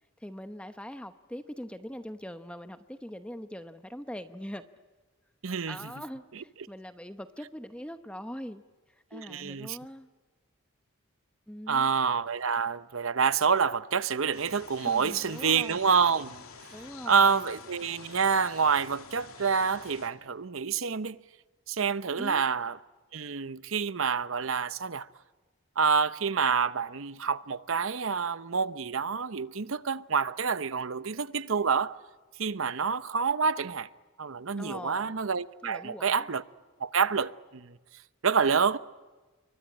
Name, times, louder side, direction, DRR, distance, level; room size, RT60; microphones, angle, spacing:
voice 1, 0.2-4.6 5.7-8.6 8.9-10.1 11.5-11.9 14.8-15.9 16.7-17.5 22.2-22.5 34.6-35.1 35.6-36.3, equal, 5° left, 0.9 m, -42 dB
voice 2, 5.4-5.8 6.3-6.4 9.1-9.8 11.7-16.4 17.1-21.2 21.7-22.8 23.1-25.1 25.8-32.0 32.4-33.9 34.2-36.4 36.8-37.8 38.2-38.8, right 6 dB, 70° right, 0.8 m, -27 dB
sound 1, 14.3-20.1, left 5 dB, 90° left, 2.8 m, -48 dB
28.5 x 24.0 x 8.7 m
head